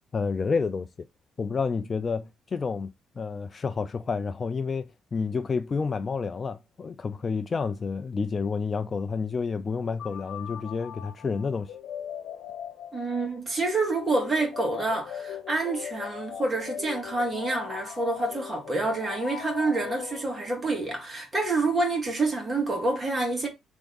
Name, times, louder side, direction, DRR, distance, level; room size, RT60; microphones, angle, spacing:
voice 1, 0.1-1.1 1.4-11.8, left 5 dB, 35° left, 0.3 m, -30 dB
sound 1, 10.0-20.7, left 9 dB, 75° left, 1.0 m, -39 dB
voice 2, 12.9-23.5, right 2 dB, 25° right, 2.1 m, -27 dB
3.5 x 3.5 x 3.9 m
cardioid pair, 90°, 0 cm